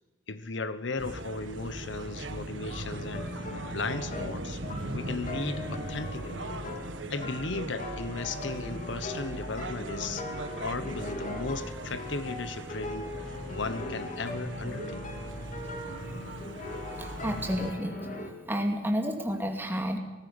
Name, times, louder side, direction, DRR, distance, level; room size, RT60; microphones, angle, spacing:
voice 1, 0.3-3.3 3.7-4.6 4.9-6.4 7.1-10.3 10.6-13.1 13.5-15.0, left 3 dB, 70° left, 13 dB, 1.1 m, -36 dB
sound 1, 1.0-17.7, right 1 dB, 75° right, 1.7 m, -39 dB
sound 2, 2.9-18.3, left 1 dB, 40° left, 2.8 m, -40 dB
voice 2, 17.0-17.9 18.5-20.0, equal, 10° right, 4 dB, 2.4 m, -30 dB
18.5 x 15.0 x 9.9 m, 1.1 s
head